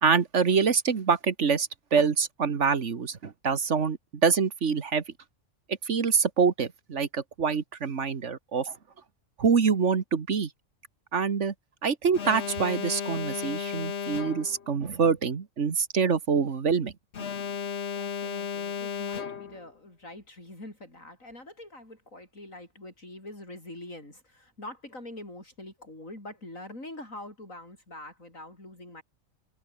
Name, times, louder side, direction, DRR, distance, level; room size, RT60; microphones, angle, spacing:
voice 1, 0.0-5.0 5.7-8.8 9.4-10.5 11.1-11.5 11.8-16.9, right 6 dB, 65° right, 1.8 m, -25 dB
Alarm, 12.1-14.7 17.1-19.7, left 6 dB, 55° left, 1.5 m, -34 dB
voice 2, 17.9-29.0, left 1 dB, 80° left, 8.5 m, -44 dB
omnidirectional pair, 1.4 m